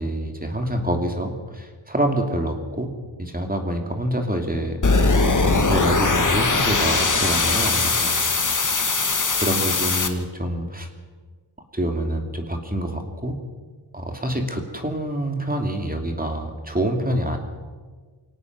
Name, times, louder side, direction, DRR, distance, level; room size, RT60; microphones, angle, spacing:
voice 1, 0.0-2.9 3.2-8.2 9.4-10.9 11.7-13.4 13.9-17.4, right 1 dB, 15° right, 3 dB, 2.7 m, -26 dB
sound 1, 4.8-10.1, left 3 dB, 40° left, 1.9 m, -20 dB
24.0 x 18.0 x 6.1 m, 1.4 s
wide cardioid pair, 80°, 48 cm